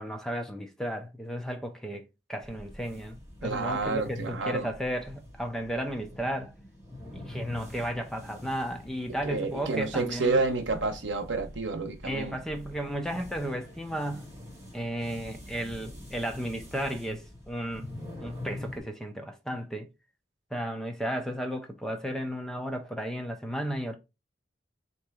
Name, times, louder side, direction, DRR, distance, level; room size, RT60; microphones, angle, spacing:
voice 1, 0.0-6.5 7.1-10.4 12.0-14.3 14.7-17.9 18.2-19.9 20.5-24.0, equal, 5° left, 0.5 m, -34 dB
sound 1, 2.4-18.8, left 1 dB, 15° right, 1.7 m, -45 dB
voice 2, 3.4-4.7 9.2-12.4, right 3 dB, 75° right, 0.9 m, -29 dB
3.4 x 2.9 x 4.7 m
head